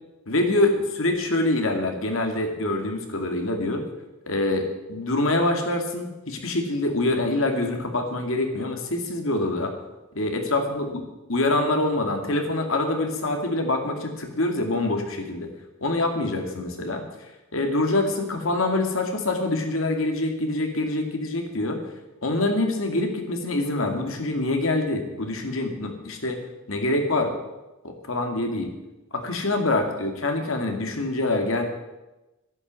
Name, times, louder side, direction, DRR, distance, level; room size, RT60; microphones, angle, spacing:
voice 1, 0.3-3.8 4.3-9.7 10.1-11.0 11.3-15.5 15.8-17.0 17.5-21.8 22.2-26.4 26.7-27.3 27.8-28.7 29.1-31.6, left 2 dB, 65° left, 4 dB, 2.3 m, -25 dB
11.0 x 10.5 x 7.6 m, 1.0 s
head